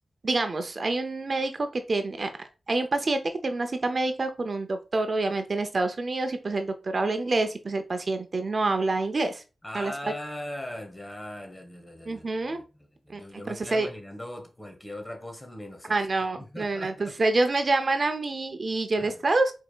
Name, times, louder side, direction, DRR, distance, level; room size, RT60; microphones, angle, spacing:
voice 1, 0.2-2.3 2.7-9.4 9.7-9.9 12.1-12.6 13.1-13.2 13.5-13.9 15.9-19.5, right 2 dB, 55° right, 0.6 m, -27 dB
voice 2, 9.6-16.0 16.4-17.2 18.9-19.2, left 1 dB, 20° left, 1.4 m, -40 dB
4.7 x 4.5 x 2.3 m
cardioid pair, 55°, 0 cm